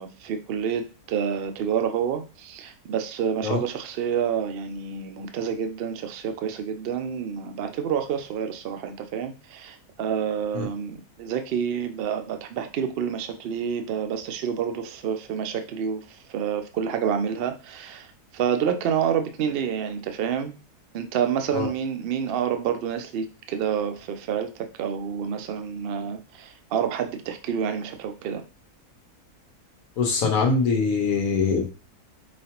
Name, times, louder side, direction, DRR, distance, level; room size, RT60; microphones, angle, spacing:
voice 1, 0.0-16.0 16.3-18.1 18.3-20.5 20.9-28.4, right 8 dB, 90° right, 7 dB, 0.5 m, -28 dB
voice 2, 30.0-31.7, left 4 dB, 70° left, 2 dB, 1.1 m, -23 dB
5.0 x 2.3 x 2.8 m, 0.33 s
omnidirectional pair, 1.6 m